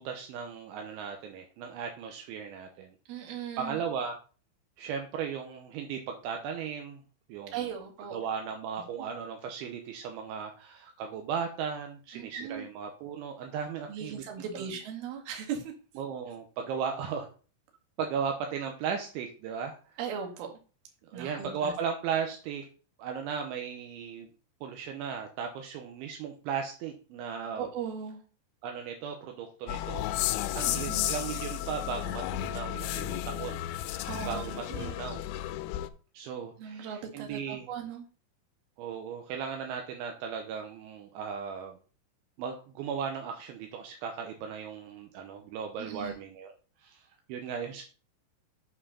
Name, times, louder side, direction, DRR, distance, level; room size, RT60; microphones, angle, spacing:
voice 1, 0.0-2.9 3.6-4.2 4.8-7.0 7.3-7.6 8.1-14.2 14.5-14.7 16.0-17.3 18.0-19.8 21.1-22.7 23.0-24.3 24.6-27.7 28.6-30.1 30.5-33.6 34.0-35.2 36.1-37.6 38.8-41.8 42.4-46.5 46.8-47.8, right 6 dB, 80° right, 3 dB, 3.1 m, -36 dB
voice 2, 3.1-3.8 7.5-8.2 12.1-12.7 13.9-15.7 20.0-20.6 21.1-21.7 27.6-28.2 30.6-31.1 34.1-34.9 36.6-38.0 45.8-46.2, right 7 dB, 60° right, 2 dB, 3.2 m, -38 dB
sound 1, 29.7-35.9, left 13 dB, 85° left, 3.1 m, -33 dB
8.9 x 4.7 x 5.6 m, 0.37 s
omnidirectional pair, 5.7 m